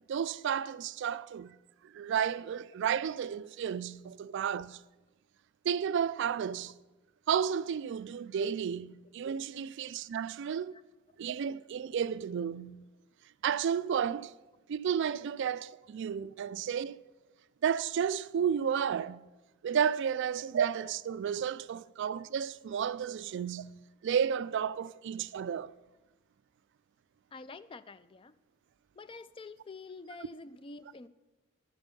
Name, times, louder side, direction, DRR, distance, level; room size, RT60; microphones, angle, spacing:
voice 1, 0.1-1.6 1.8-4.8 5.6-6.8 7.3-10.7 11.2-12.8 13.4-14.3 14.7-17.0 17.6-19.3 19.6-25.7, right 8 dB, 55° right, 0.3 m, -32 dB
voice 2, 27.3-28.3 28.9-31.1, left 3 dB, 25° left, 0.3 m, -47 dB
11.5 x 8.9 x 5.3 m
head